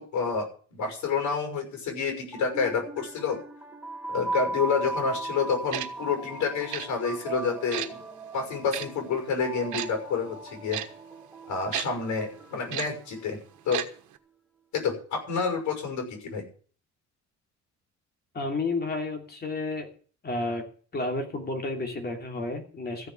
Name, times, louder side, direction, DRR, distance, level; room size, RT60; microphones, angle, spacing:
voice 1, 0.0-3.4 4.1-8.0 8.3-10.8 11.5-13.4 13.6-13.8 14.7-16.4, left 5 dB, 85° left, 5 dB, 6.0 m, -29 dB
sound 1, 2.1-13.2, right 2 dB, 5° right, 1.7 m, -38 dB
Tick-tock, 5.7-5.9 6.7-6.9 7.7-7.9 8.7-8.8 9.7-9.9 10.7-10.9 11.7-11.9 12.7-12.9 13.7-13.9 14.1-14.2, right 12 dB, 80° right, 1.3 m, -31 dB
voice 2, 18.3-19.9 20.2-20.6 20.9-23.1, left 2 dB, 35° left, 3 dB, 3.0 m, -31 dB
14.5 x 6.8 x 8.4 m, 0.43 s
cardioid pair, 125°, 29 cm